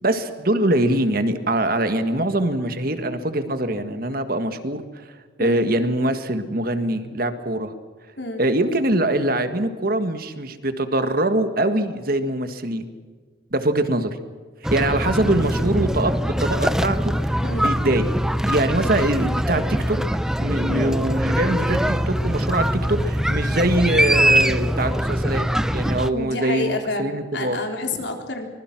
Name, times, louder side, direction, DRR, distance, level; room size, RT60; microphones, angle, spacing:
voice 1, 0.0-4.8 5.4-7.7 8.4-12.9 13.5-14.2 14.7-16.1 16.4-17.3 17.6-18.0 18.4-20.0 20.4-25.5 25.7-27.6, right 1 dB, 50° right, 9 dB, 1.7 m, -23 dB
sound 1, 14.6-26.1, equal, 5° right, 0.6 m, -22 dB
voice 2, 20.7-21.0 26.1-28.4, left 2 dB, 60° left, 3 dB, 4.0 m, -29 dB
25.0 x 21.0 x 6.1 m, 1.5 s
head